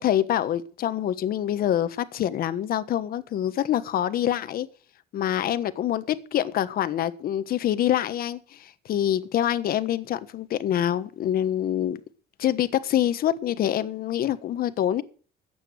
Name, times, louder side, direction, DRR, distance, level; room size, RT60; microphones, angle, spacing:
voice 1, 0.0-4.7 5.1-12.0 12.4-15.0, left 11 dB, 60° left, 1.3 m, -25 dB
14.5 x 9.2 x 6.5 m
cardioid pair, 110°, 17 cm